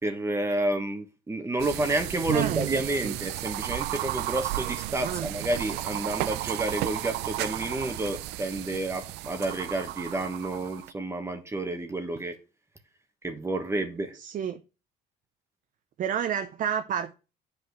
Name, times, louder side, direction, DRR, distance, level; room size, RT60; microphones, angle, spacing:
voice 1, 0.0-12.4 13.2-14.2, right 2 dB, 15° right, 1.2 m, -30 dB
sound 1, 1.6-10.9, right 17 dB, 90° right, 0.5 m, -33 dB
voice 2, 2.2-3.2 5.0-5.3 14.1-14.6 16.0-17.1, right 8 dB, 50° right, 0.7 m, -31 dB
7.6 x 5.0 x 6.4 m
cardioid pair, 110°, 17 cm